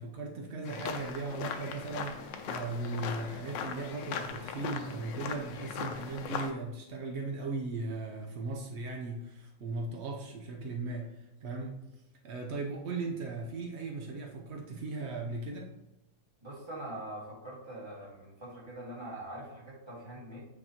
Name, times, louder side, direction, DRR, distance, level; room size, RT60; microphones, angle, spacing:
voice 1, 0.0-11.8 12.2-15.7, right 3 dB, 80° right, 1 dB, 0.6 m, -37 dB
sound 1, 0.6-6.5, left 7 dB, 80° left, 1.3 m, -39 dB
voice 2, 16.4-20.4, right 1 dB, 15° right, -6 dB, 2.0 m, -43 dB
8.8 x 4.2 x 2.9 m, 0.88 s
omnidirectional pair, 2.0 m